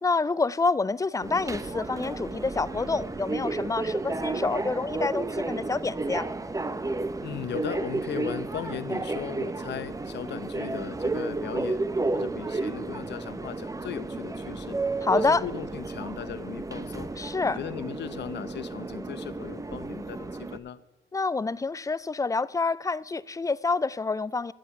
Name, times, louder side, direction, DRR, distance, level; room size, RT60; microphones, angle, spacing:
voice 1, 0.0-6.3 15.0-15.4 17.2-17.6 21.1-24.5, left 4 dB, 15° left, 0.4 m, -27 dB
Subway metro underground, 1.2-20.6, right 3 dB, 15° right, 0.8 m, -32 dB
voice 2, 7.2-11.9 12.1-14.8 15.1-17.1 17.4-20.8, left 9 dB, 60° left, 0.8 m, -37 dB
12.0 x 7.9 x 8.9 m
cardioid pair, 90°, 20 cm